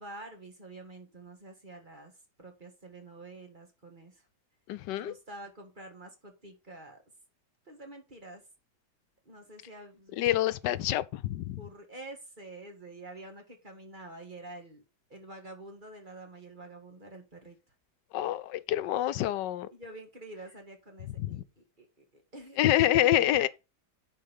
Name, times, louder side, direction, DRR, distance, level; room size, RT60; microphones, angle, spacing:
voice 1, 0.0-2.1 2.4-4.2 4.9-7.0 7.7-8.4 9.3-10.7 11.6-14.8 15.1-17.6 19.7-23.5, right 2 dB, 30° right, 2.1 m, -47 dB
voice 2, 4.7-5.1 10.2-11.6 18.1-19.7 21.2-21.4 22.6-23.5, left 13 dB, 90° left, 1.3 m, -27 dB
10.0 x 4.7 x 5.4 m
omnidirectional pair, 1.8 m